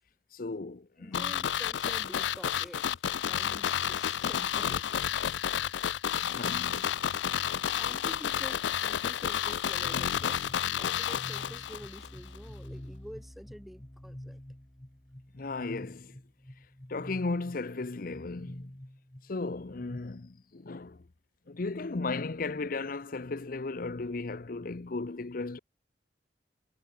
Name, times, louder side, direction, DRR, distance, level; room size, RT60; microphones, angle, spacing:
voice 1, 0.3-1.3 6.2-6.9 15.3-16.2 16.9-18.7 19.3-21.0 21.5-25.6, left 3 dB, 50° left, 0.7 m, -35 dB
voice 2, 1.0-4.9 5.6-5.7 7.7-14.4, equal, ahead, 1.4 m, -48 dB
sound 1, 1.1-12.1 12.4-12.5, left 9 dB, 80° left, 0.4 m, -31 dB
sound 2, 9.8-20.0, left 1 dB, 20° left, 1.3 m, -47 dB
head